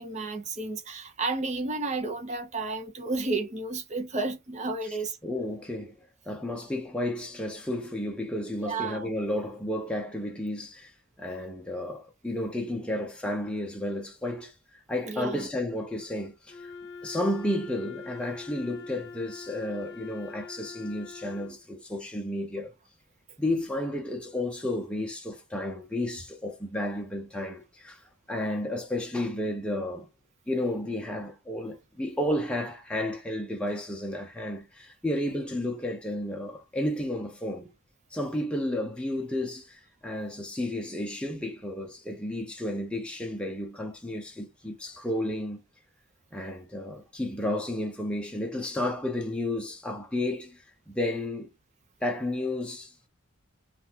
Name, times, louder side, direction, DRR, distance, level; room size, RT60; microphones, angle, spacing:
voice 1, 0.0-5.2 8.6-9.1 15.0-15.5, right 3 dB, 30° right, 0.7 m, -32 dB
voice 2, 5.2-5.9 6.3-10.9 11.2-16.7 17.0-22.7 23.4-30.1 30.5-37.7 38.1-45.6 46.3-51.5 52.0-53.1, left 1 dB, 5° left, 0.6 m, -32 dB
Wind instrument woodwind instrument, 16.5-21.6, left 4 dB, 50° left, 0.8 m, -44 dB
3.7 x 2.4 x 2.8 m
head